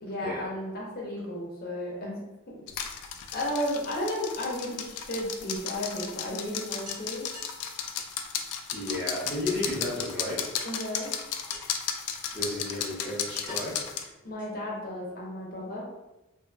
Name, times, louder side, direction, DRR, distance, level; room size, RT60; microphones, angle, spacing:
voice 1, 0.0-2.7 3.3-7.3 10.6-11.1 14.2-15.8, left 1 dB, 40° left, -3 dB, 0.7 m, -34 dB
sound 1, 2.7-14.0, left 8 dB, 90° left, 0.3 m, -35 dB
sound 2, 2.8-3.9 5.4-5.5 5.8-5.9 6.2-6.3 6.8-8.2 8.9-9.1 10.1-10.6 11.5-11.9 12.8-12.9 13.5-14.8, left 1 dB, 70° right, 0.9 m, -48 dB
voice 2, 8.7-10.4 12.3-13.8, left 1 dB, 5° left, -11 dB, 0.7 m, -33 dB
2.6 x 2.6 x 2.2 m, 1.0 s
head